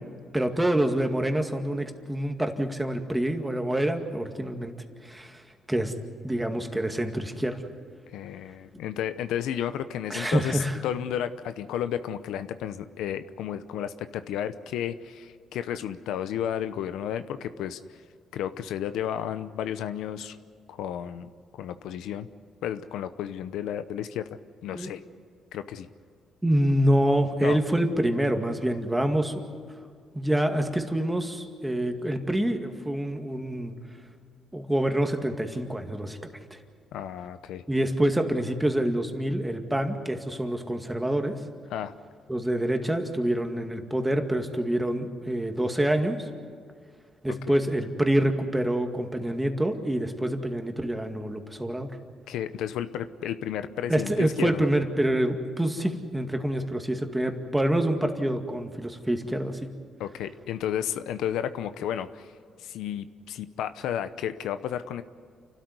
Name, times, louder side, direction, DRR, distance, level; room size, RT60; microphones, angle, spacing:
voice 1, 0.3-4.7 5.0-5.4 5.7-5.9 6.2-7.6 10.1-10.8 24.7-24.9 26.4-29.3 30.1-33.8 34.5-36.2 37.7-41.4 42.3-46.2 47.2-51.9 53.9-59.7, right 1 dB, 10° right, 5 dB, 2.1 m, -26 dB
voice 2, 8.1-17.8 18.3-20.4 20.7-21.3 21.6-22.3 22.6-25.0 25.5-25.9 27.4-27.6 36.9-37.6 41.7-41.9 47.5-47.6 52.3-54.7 60.0-62.3 62.6-65.0, left 10 dB, 85° left, 11 dB, 0.8 m, -32 dB
29.0 x 12.5 x 9.6 m, 2.1 s
cardioid pair, 90°, 0 cm